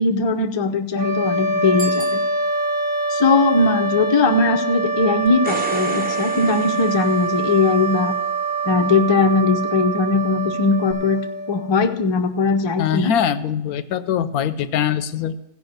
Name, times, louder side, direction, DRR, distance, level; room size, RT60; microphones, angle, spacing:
voice 1, 0.0-2.2 3.1-8.1 8.6-13.1, left 4 dB, 35° left, 4 dB, 0.4 m, -19 dB
sound 1, 0.9-11.9, right 3 dB, 40° right, 1.3 m, -24 dB
Bicycle bell, 1.7-2.9, right 3 dB, 55° right, 2.7 m, -36 dB
sound 2, 5.3-7.8 10.9-11.0, right 1 dB, 5° right, 0.8 m, -32 dB
voice 2, 12.8-15.4, left 9 dB, 75° left, 13 dB, 1.1 m, -22 dB
15.0 x 5.3 x 6.6 m, 0.90 s
omnidirectional pair, 1.6 m